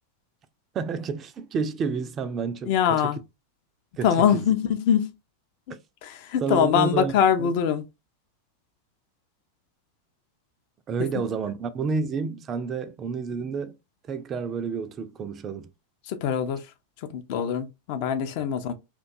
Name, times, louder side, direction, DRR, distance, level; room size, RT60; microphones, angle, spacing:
voice 1, 0.7-3.1 4.0-4.1 4.3-4.4 6.4-7.5 10.9-13.8 14.1-15.7, right 5 dB, 25° right, 0.3 m, -30 dB
voice 2, 2.7-3.2 4.0-5.1 6.0-7.8 16.1-16.7 17.0-18.7, left 8 dB, 45° left, 0.4 m, -23 dB
2.5 x 2.2 x 2.6 m
figure-of-eight pair, 90°, 0 cm